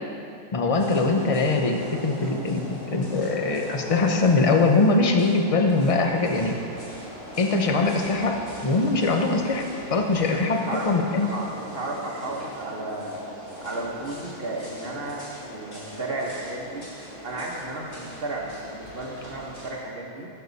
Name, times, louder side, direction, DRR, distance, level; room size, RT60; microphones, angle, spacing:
voice 1, 0.5-6.6 7.4-9.6 9.9-11.3, left 3 dB, 35° left, 3 dB, 0.6 m, -22 dB
sound 1, 0.7-19.7, equal, 60° left, 3.0 m, -40 dB
voice 2, 10.3-10.9 11.2-13.2 13.6-16.9 17.2-20.3, right 2 dB, 45° right, -2 dB, 1.3 m, -34 dB
13.5 x 6.7 x 4.1 m, 2.4 s
omnidirectional pair, 1.5 m